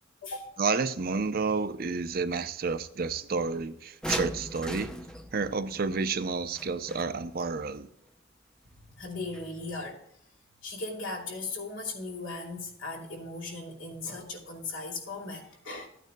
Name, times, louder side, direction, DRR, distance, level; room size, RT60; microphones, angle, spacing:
voice 1, 0.6-4.9 5.3-7.9, right 4 dB, 50° right, 0.6 m, -30 dB
sound 1, 4.0-7.4 9.3-9.4 9.8-9.9, equal, 5° left, 0.6 m, -37 dB
voice 2, 8.8-10.0 10.6-15.9, left 3 dB, 80° left, 2.8 m, -38 dB
15.0 x 9.2 x 2.2 m
head